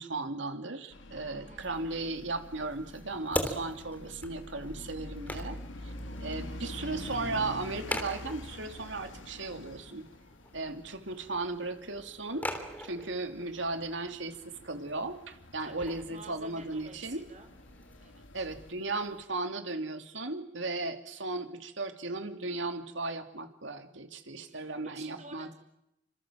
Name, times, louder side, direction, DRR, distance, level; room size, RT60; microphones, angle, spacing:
voice 1, 0.0-5.9 6.2-10.0 10.5-12.5 12.8-17.2 18.3-25.5, right 3 dB, 75° right, 7 dB, 3.0 m, -36 dB
sound 1, 0.9-18.7, left 1 dB, 85° left, 2.3 m, -46 dB
voice 2, 1.5-1.9 6.2-6.6 15.6-17.5 18.0-18.5 24.5-25.5, right 3 dB, 40° right, 6 dB, 5.6 m, -52 dB
sound 2, 1.6-19.2, left 1 dB, 10° left, 3.3 m, -43 dB
29.5 x 26.5 x 7.6 m, 0.81 s
head